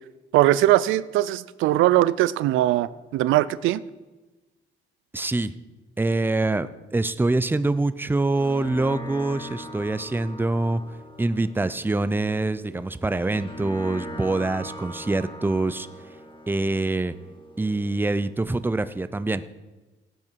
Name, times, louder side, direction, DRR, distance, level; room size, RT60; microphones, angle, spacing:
voice 1, 0.3-3.8, right 14 dB, 90° right, 17 dB, 0.5 m, -20 dB
voice 2, 5.1-5.5 6.0-10.8 11.2-15.9 16.5-17.1 17.6-19.4, right 2 dB, 10° right, 13 dB, 0.6 m, -25 dB
sound 1, 8.0-19.0, equal, 25° left, 2.0 m, -42 dB
17.0 x 8.5 x 4.7 m, 1.2 s
cardioid pair, 90°, 20 cm